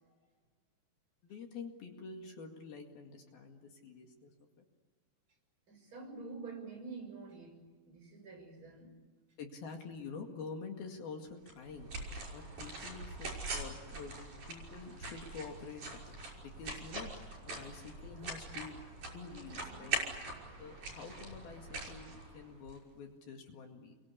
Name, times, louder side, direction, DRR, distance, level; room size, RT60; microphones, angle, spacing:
voice 1, 1.2-4.3 4.6-4.7 9.4-11.9 12.3-18.8 19.1-20.0 20.6-24.0, left 4 dB, 65° left, 3 dB, 3.8 m, -48 dB
voice 2, 5.7-9.0, right 4 dB, 30° right, 4 dB, 7.0 m, -47 dB
sound 1, 11.5-22.8, right 2 dB, 50° right, 6.9 m, -43 dB
29.0 x 23.0 x 8.5 m, 1.4 s
omnidirectional pair, 4.8 m